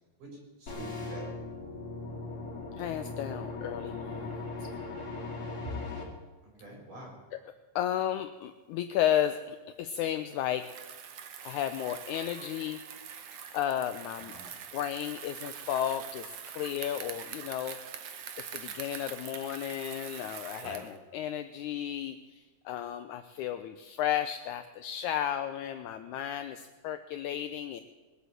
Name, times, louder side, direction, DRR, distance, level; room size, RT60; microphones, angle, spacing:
voice 1, 0.2-1.2 5.7-5.8 6.6-7.1 14.2-14.5 20.6-20.8, right 1 dB, 65° right, 0 dB, 5.6 m, -44 dB
sound 1, 0.7-6.0, left 3 dB, 30° left, 2.3 m, -39 dB
voice 2, 2.8-4.7 7.7-10.7 11.4-12.8 13.5-14.3 14.7-17.8 18.4-27.8, left 10 dB, 85° left, 9 dB, 1.7 m, -33 dB
Bicycle, 10.5-21.0, right 8 dB, 90° right, 1.2 m, -44 dB
20.5 x 8.3 x 7.9 m, 1.3 s
omnidirectional pair, 4.1 m